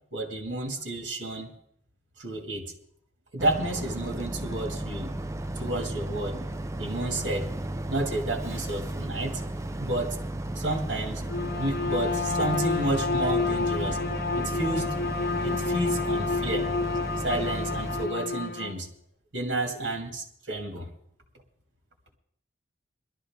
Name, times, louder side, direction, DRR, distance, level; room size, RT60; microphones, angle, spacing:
voice 1, 0.1-1.5 2.2-2.7 3.3-5.1 5.6-6.4 6.8-7.5 7.9-9.4 9.8-10.2 10.6-11.2 11.5-14.0 14.3-14.9 15.4-16.7 17.2-18.9 19.3-20.9, right 2 dB, 70° right, 2 dB, 2.4 m, -31 dB
Boat Water vehicle, 3.4-18.1, right 1 dB, 15° right, 0.5 m, -34 dB
Bowed string instrument, 11.2-18.8, left 4 dB, 55° left, 0.7 m, -29 dB
21.5 x 13.0 x 3.7 m, 0.67 s
head